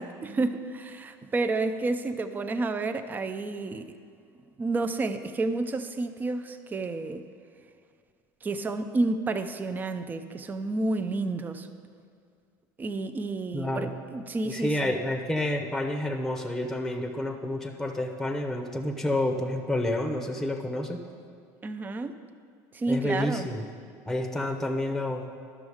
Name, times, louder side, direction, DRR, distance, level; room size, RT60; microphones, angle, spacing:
voice 1, 0.0-4.0 4.6-7.3 8.4-11.7 12.8-15.0 21.6-22.2 22.7-23.5, right 3 dB, 20° right, 9 dB, 0.5 m, -30 dB
voice 2, 13.5-13.9 14.4-21.0 22.9-23.6 24.1-25.2, left 1 dB, 5° left, 4 dB, 0.8 m, -29 dB
12.0 x 6.2 x 4.9 m, 2.2 s
supercardioid pair, 110°, 9 cm